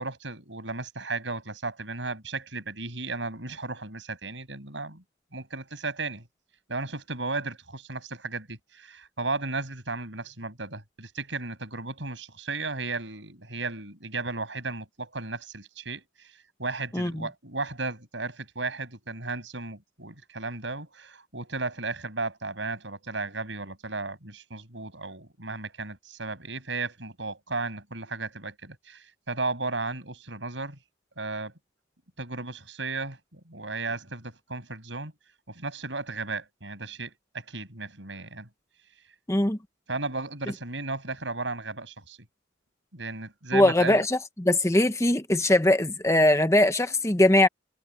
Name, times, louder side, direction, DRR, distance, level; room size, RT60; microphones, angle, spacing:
voice 1, 0.0-5.0 5.3-6.3 6.7-16.3 16.6-30.8 31.2-31.5 32.2-35.1 35.5-38.5 39.9-42.2 42.9-44.0, right 3 dB, 70° right, 7.7 m, -35 dB
voice 2, 16.9-17.3 39.3-39.6 43.5-47.5, left 1 dB, 15° left, 1.0 m, -21 dB
head